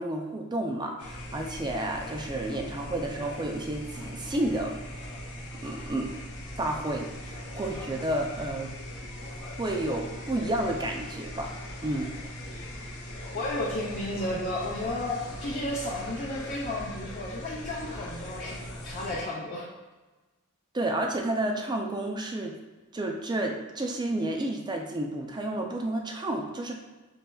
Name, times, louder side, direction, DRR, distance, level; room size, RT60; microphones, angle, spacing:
voice 1, 0.0-4.8 5.6-6.2 6.6-8.7 9.4-11.5 11.8-12.1 20.7-22.6 22.9-26.8, right 1 dB, 20° right, 2 dB, 0.4 m, -31 dB
sound 1, 1.0-19.2, equal, 90° left, 0.8 m, -40 dB
voice 2, 13.3-19.7, left 1 dB, 40° left, -5 dB, 0.6 m, -33 dB
5.5 x 3.2 x 2.3 m, 1.2 s
head